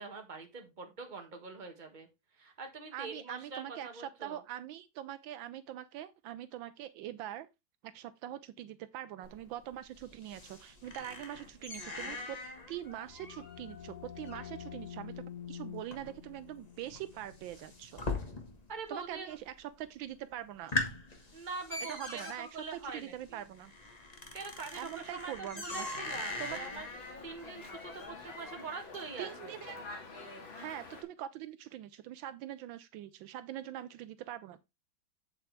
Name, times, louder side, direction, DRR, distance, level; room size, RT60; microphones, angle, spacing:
voice 1, 0.0-2.1 2.3-4.4 18.7-19.3 21.3-23.4 24.3-26.9 27.2-29.6, right 4 dB, 25° right, 1.5 m, -44 dB
voice 2, 2.9-7.5 7.8-12.4 12.7-15.2 15.5-18.0 18.9-20.8 21.9-23.7 24.7-26.0 26.4-26.6 29.2-29.8 30.5-34.6, right 12 dB, 80° right, 1.3 m, -43 dB
sound 1, 9.2-18.8 19.1-19.7 20.1-20.2 20.5-28.8, left 2 dB, 25° left, 1.3 m, -42 dB
sound 2, 12.7-18.3, left 9 dB, 50° left, 1.1 m, -48 dB
Dog, 25.7-31.0, left 3 dB, 85° left, 2.8 m, -48 dB
7.7 x 7.5 x 3.3 m
omnidirectional pair, 2.1 m